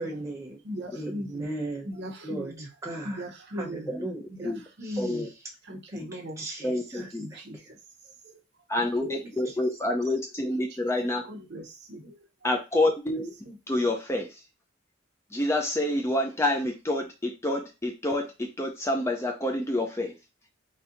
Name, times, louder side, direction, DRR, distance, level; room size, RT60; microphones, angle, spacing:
voice 1, 0.0-0.6 0.9-1.9 2.2-3.2 3.5-4.5 4.8-5.3 5.9-7.7 9.4-9.5, right 2 dB, 15° right, -3 dB, 0.8 m, -38 dB
voice 2, 0.6-1.5 1.8-2.7 3.0-3.9 4.3-4.5 4.8-5.3 5.6-6.4 6.9-7.6 8.2-8.3 8.8-8.9 11.2-12.2 13.4-13.6, equal, 55° right, 3 dB, 0.7 m, -38 dB
voice 3, 5.0-5.3 6.6-7.2 8.7-11.2 12.4-13.3 13.7-14.4 15.3-20.1, left 1 dB, 15° left, 2 dB, 0.4 m, -28 dB
4.1 x 2.7 x 2.6 m, 0.27 s
head